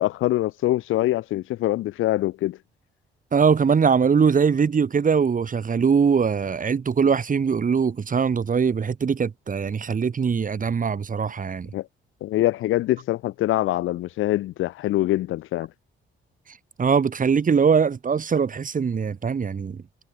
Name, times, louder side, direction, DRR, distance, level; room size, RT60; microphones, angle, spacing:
voice 1, 0.0-2.6 11.7-11.8 12.2-15.7, left 15 dB, 90° left, 4.9 m, -24 dB
voice 2, 3.3-11.7 16.8-19.8, right 6 dB, 40° right, 7.5 m, -21 dB
cardioid pair, 90°, 20 cm